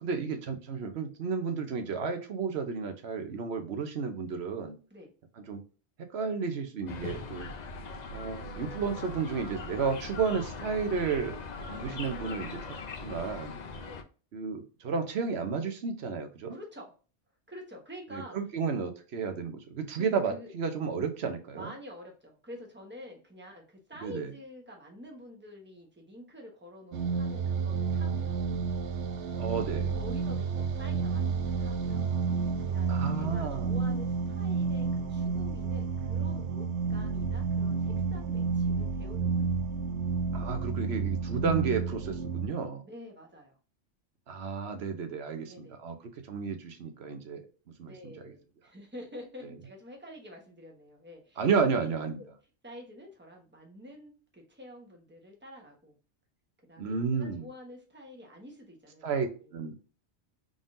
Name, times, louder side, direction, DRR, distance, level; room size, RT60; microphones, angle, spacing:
voice 1, 0.0-4.8 5.5-5.6 6.0-7.5 8.1-11.4 11.7-12.6 13.0-13.6 14.3-16.6 18.1-21.7 24.0-24.3 29.4-30.0 32.9-33.8 40.3-42.8 44.3-45.9 46.3-47.4 47.8-48.3 51.4-52.2 56.8-57.5 59.0-59.8, right 5 dB, 70° right, 6 dB, 1.0 m, -32 dB
sound 1, 6.9-14.0, left 3 dB, 50° left, 0.6 m, -40 dB
voice 2, 16.5-16.9 17.5-18.4 19.9-20.5 21.5-28.4 29.9-39.5 42.8-43.5 45.4-45.8 47.8-51.4 51.7-51.9 52.2-52.3 52.6-56.0 56.7-59.0 59.4-59.5, left 1 dB, 10° right, 0 dB, 1.1 m, -48 dB
sound 2, 26.9-42.5, right 5 dB, 85° right, 0.9 m, -30 dB
3.8 x 3.7 x 2.5 m, 0.36 s
omnidirectional pair, 1.2 m